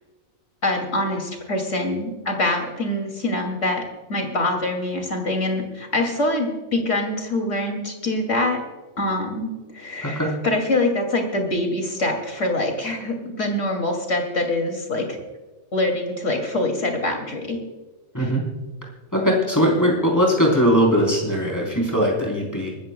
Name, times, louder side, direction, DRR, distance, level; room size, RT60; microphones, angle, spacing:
voice 1, 0.6-3.8 4.1-8.6 9.0-15.2 15.7-17.6, left 2 dB, 60° left, 3 dB, 3.0 m, -24 dB
voice 2, 10.0-10.3 18.1-18.4 19.1-22.8, equal, 15° left, -2 dB, 3.9 m, -20 dB
24.5 x 14.0 x 2.3 m, 1.2 s
omnidirectional pair, 1.4 m